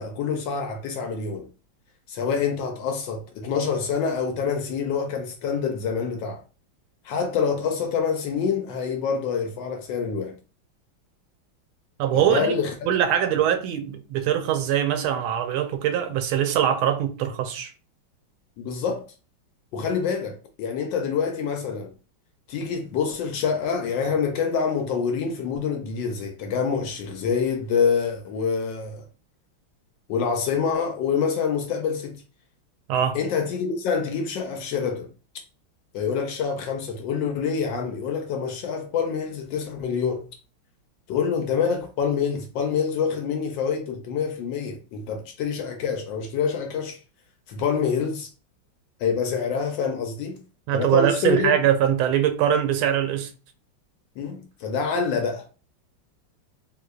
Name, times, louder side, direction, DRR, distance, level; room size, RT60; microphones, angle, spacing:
voice 1, 0.0-1.5 2.1-6.4 7.0-10.4 12.1-12.7 18.6-19.0 19.7-21.9 22.5-29.1 30.1-32.2 33.1-35.1 35.9-40.3 41.1-47.0 47.5-48.3 49.0-50.4 50.7-51.5 54.2-55.5, left 6 dB, 75° left, 1.1 m, -26 dB
voice 2, 12.0-12.5 12.9-17.7 32.9-33.2 50.7-53.3, right 10 dB, 85° right, 1.4 m, -22 dB
3.9 x 2.8 x 2.2 m
omnidirectional pair, 2.3 m